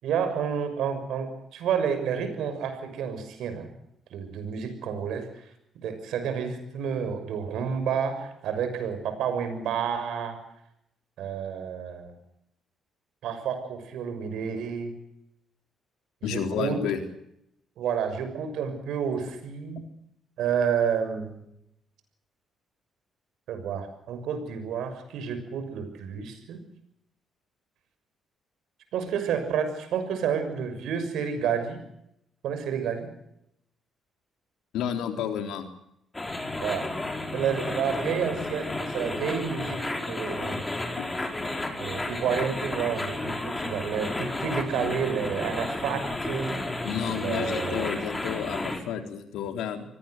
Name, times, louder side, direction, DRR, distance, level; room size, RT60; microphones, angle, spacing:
voice 1, 0.0-3.7 4.1-5.3 5.8-10.4 11.2-12.1 13.2-14.9 16.3-16.8 17.8-19.8 20.4-21.4 23.5-26.6 28.9-31.8 32.4-33.1 36.6-36.9 37.3-40.6 41.8-46.6 47.1-48.0, right 7 dB, 80° right, 9 dB, 6.4 m, -30 dB
voice 2, 16.2-17.0 34.7-35.7 41.0-41.1 46.8-49.8, left 8 dB, 90° left, 6 dB, 3.9 m, -31 dB
sound 1, 36.1-48.8, left 2 dB, 15° left, 4.7 m, -32 dB
25.5 x 18.5 x 8.1 m, 0.78 s
cardioid pair, 90°, 0 cm